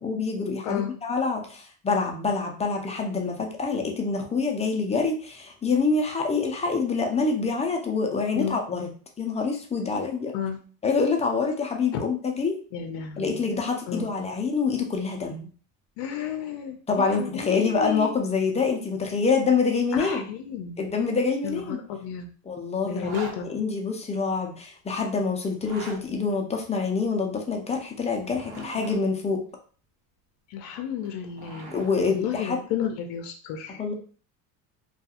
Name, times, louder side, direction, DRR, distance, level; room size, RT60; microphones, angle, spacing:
voice 1, 0.0-8.9 9.2-10.3 10.8-12.6 13.2-15.5 16.9-20.3 20.8-21.8 22.4-29.4 31.7-32.6 33.7-33.9, left 4 dB, 15° left, 2 dB, 0.4 m, -26 dB
voice 2, 12.7-13.4 13.9-14.1 16.0-18.1 20.0-20.8 21.4-22.3 22.9-23.6 30.5-31.7 32.0-33.9, left 8 dB, 75° left, 5 dB, 0.5 m, -32 dB
Zipper (clothing), 23.0-23.4 25.5-26.0 28.1-29.0 30.9-32.0, right 3 dB, 65° right, 1.0 m, -41 dB
2.3 x 2.3 x 2.8 m, 0.41 s
cardioid pair, 110°, 43 cm